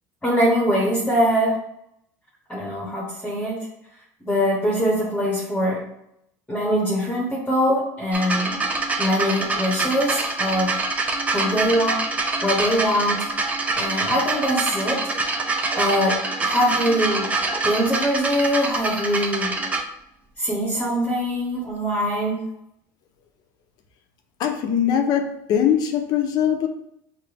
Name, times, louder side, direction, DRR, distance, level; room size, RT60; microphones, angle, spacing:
voice 1, 0.2-1.6 2.5-3.7 4.2-5.8 6.5-8.5 9.0-10.7 11.3-12.0 12.4-13.3 13.7-15.0 15.7-17.3 17.6-19.6 20.4-22.4, equal, 10° left, -3 dB, 1.0 m, -22 dB
sound 1, 8.1-19.8 20.7-20.8, right 3 dB, 15° right, 0.6 m, -25 dB
voice 2, 24.4-26.7, left 9 dB, 55° left, 5 dB, 0.7 m, -21 dB
5.9 x 2.1 x 3.4 m, 0.76 s
supercardioid pair, 125°, 8 cm